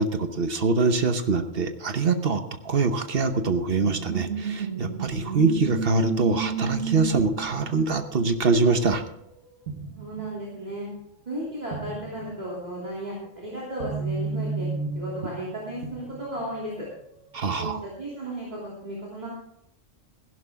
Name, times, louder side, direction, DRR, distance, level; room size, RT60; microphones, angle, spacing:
voice 1, 0.0-9.0 17.3-17.8, right 4 dB, 50° right, 8 dB, 1.1 m, -24 dB
sound 1, 3.8-9.4 9.7-10.4 10.7-10.8 11.7-12.5 13.2-16.6 17.4-17.8, right 5 dB, 85° right, 1.8 m, -33 dB
voice 2, 9.9-10.9 11.2-14.7 14.9-16.9 17.6-19.3, right 1 dB, 35° right, -6 dB, 3.2 m, -34 dB
16.0 x 11.5 x 3.6 m, 0.78 s
omnidirectional pair, 1.3 m